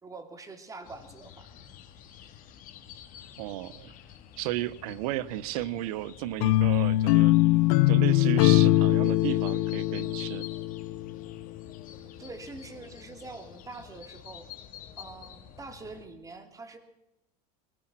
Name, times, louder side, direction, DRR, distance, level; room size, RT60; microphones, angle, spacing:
voice 1, 0.0-1.5 12.2-14.5 15.0-16.8, right 3 dB, 20° right, 7 dB, 2.8 m, -44 dB
sound 1, 0.8-16.1, left 9 dB, 45° left, 2.4 m, -49 dB
voice 2, 3.4-3.9 4.4-7.3 7.9-10.4, right 14 dB, 75° right, 18 dB, 1.1 m, -34 dB
sound 2, 6.4-11.5, left 16 dB, 75° left, 0.8 m, -22 dB
22.0 x 19.5 x 6.1 m, 0.94 s
supercardioid pair, 125°, 19 cm